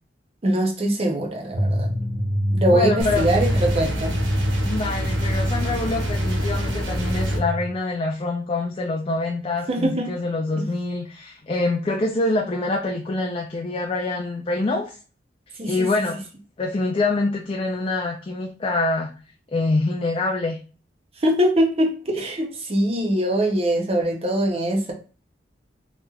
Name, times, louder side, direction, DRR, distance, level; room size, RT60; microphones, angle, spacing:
voice 1, 0.4-1.9 2.5-4.1 9.7-10.1 10.6-10.7 15.6-15.9 21.2-24.9, right 1 dB, 35° right, 0.6 m, -22 dB
sound 1, 1.5-7.7, equal, 50° right, 1.5 m, -25 dB
voice 2, 2.7-3.4 4.7-15.0 15.6-16.2 16.6-19.1 19.5-20.6, left 2 dB, 30° left, 0.3 m, -25 dB
sound 2, 3.0-7.4, right 1 dB, 85° right, 0.8 m, -28 dB
3.1 x 3.0 x 2.3 m
head